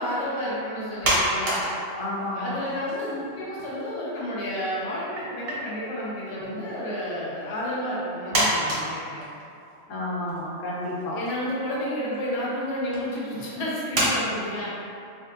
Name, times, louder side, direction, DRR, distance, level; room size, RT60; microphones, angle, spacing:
voice 1, 0.0-2.0 2.3-9.2 11.1-14.7, equal, 35° left, -7 dB, 0.8 m, -31 dB
sound 1, 1.0-2.3 2.6-3.9 4.1-4.2 5.2-5.6 6.3-6.8 7.6-7.7 8.3-9.7 10.3-10.4 10.8-11.3 12.1-12.3 12.9-13.0 13.9-14.1, right 1 dB, 55° right, 1.0 m, -27 dB
voice 2, 2.0-2.6 9.9-11.2, left 1 dB, 85° left, -7 dB, 1.2 m, -31 dB
3.9 x 2.9 x 2.7 m, 2.6 s
omnidirectional pair, 1.3 m